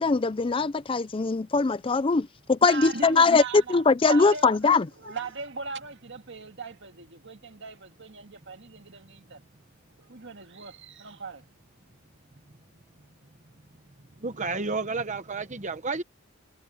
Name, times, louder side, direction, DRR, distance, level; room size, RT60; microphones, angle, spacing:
voice 1, 0.0-4.9, left 4 dB, 25° left, 0.4 m, -22 dB
voice 2, 2.6-9.4 10.0-11.4, right 4 dB, 55° right, 2.1 m, -39 dB
voice 3, 14.2-16.0, right 3 dB, 35° right, 1.1 m, -31 dB
head